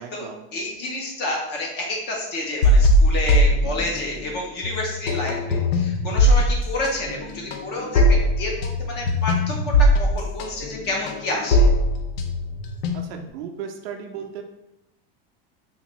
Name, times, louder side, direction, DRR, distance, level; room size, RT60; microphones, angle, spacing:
voice 1, 0.0-0.5 12.9-14.4, right 7 dB, 80° right, 4 dB, 0.5 m, -35 dB
voice 2, 0.5-11.7, left 2 dB, 35° left, -1 dB, 0.6 m, -29 dB
sound 1, 2.6-4.3 4.6-13.3, equal, 80° left, 0.6 m, -20 dB
3.6 x 2.5 x 3.0 m, 0.86 s
supercardioid pair, 155°, 30 cm